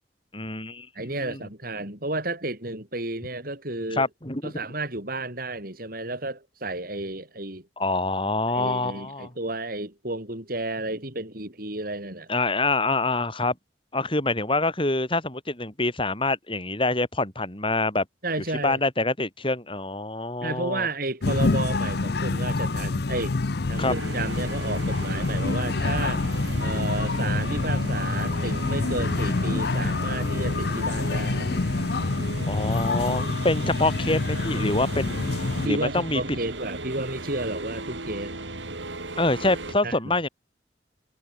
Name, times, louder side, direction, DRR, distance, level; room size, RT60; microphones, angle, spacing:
voice 1, 0.3-0.9 1.2-1.4 3.9-4.7 7.8-9.3 12.3-13.5 13.9-18.0 18.6-20.9 23.8-23.9 29.7-29.8 32.5-35.3 35.6-36.4 39.2-40.3, left 2 dB, 30° left, 6.6 m, -26 dB
voice 2, 1.0-4.1 4.4-7.7 8.5-12.3 18.2-18.8 20.4-23.4 23.7-26.2 26.6-31.5 35.6-38.4 39.8-40.2, right 2 dB, 50° right, 7.3 m, -32 dB
sound 1, 21.2-35.7, left 3 dB, 60° left, 0.7 m, -26 dB
sound 2, 23.8-39.8, right 2 dB, 85° right, 5.3 m, -36 dB
head